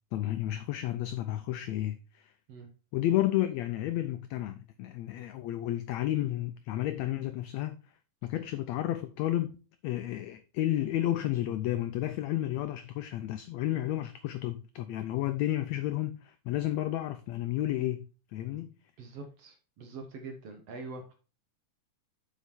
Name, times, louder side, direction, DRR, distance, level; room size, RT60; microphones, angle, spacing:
voice 1, 0.1-2.3 2.9-7.8 8.2-9.6 9.8-18.7, left 14 dB, 90° left, 1.5 m, -32 dB
voice 2, 19.0-21.1, right 3 dB, 60° right, 1.9 m, -44 dB
7.3 x 5.8 x 4.3 m
omnidirectional pair, 3.8 m